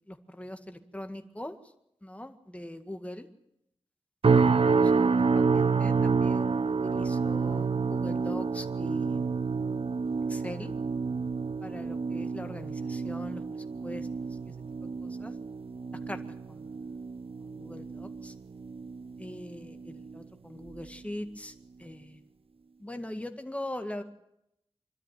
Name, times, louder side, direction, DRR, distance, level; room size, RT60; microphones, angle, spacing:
voice 1, 0.1-1.6 2.0-3.3 4.3-9.3 10.3-10.7 11.6-13.4 13.8-14.5 15.0-15.3 16.1-16.2 16.5-17.0 17.5-18.3 19.2-21.5 21.8-22.2 22.8-24.0, left 1 dB, 10° left, 6 dB, 1.9 m, -41 dB
sound 1, 4.2-19.4 19.8-20.2 20.7-20.9, right 5 dB, 60° right, 0.7 m, -28 dB
25.0 x 12.5 x 9.4 m, 0.81 s
wide cardioid pair, 70°, 11 cm